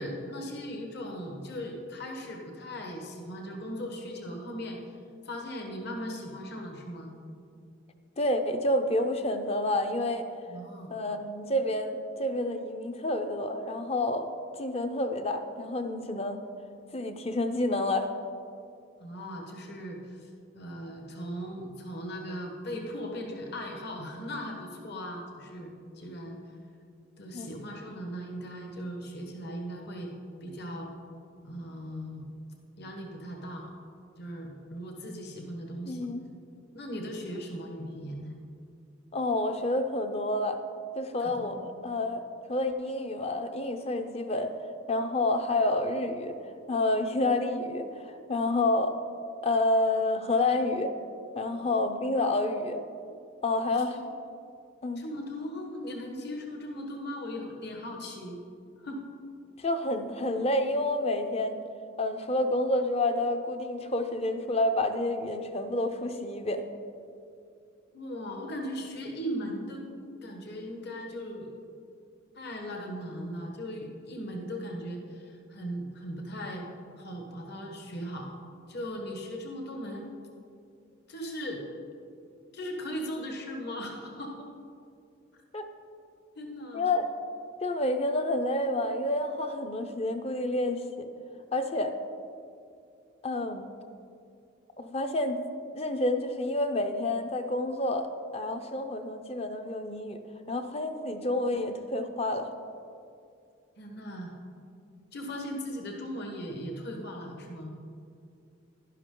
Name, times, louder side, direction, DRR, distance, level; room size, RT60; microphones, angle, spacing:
voice 1, 0.0-4.8 5.2-7.1 10.5-10.9 19.0-26.4 27.2-30.1 30.4-30.9 31.4-32.2 32.8-33.7 34.2-36.1 36.7-38.4 41.2-41.7 51.5-51.7 53.7-53.8 55.0-58.4 58.8-59.0 67.9-69.9 70.2-71.5 72.3-76.7 77.0-78.3 78.7-80.1 81.1-81.7 82.5-84.5 86.3-86.9 103.8-104.4 105.1-107.8, equal, 50° left, 1 dB, 1.3 m, -38 dB
voice 2, 8.2-10.3 10.9-14.3 14.6-16.4 16.9-18.1 27.3-27.5 35.9-36.2 39.1-40.6 41.0-42.2 42.5-44.5 44.9-46.4 46.7-48.9 49.4-50.9 51.3-52.8 53.4-54.0 54.8-55.0 59.6-61.6 62.0-66.6 85.5-85.7 86.7-87.1 87.6-91.1 91.5-92.0 93.2-93.7 94.8-95.4 95.7-98.1 98.3-100.2 100.5-102.5, left 2 dB, 30° left, 7 dB, 0.6 m, -29 dB
11.5 x 11.0 x 3.8 m, 2.5 s
head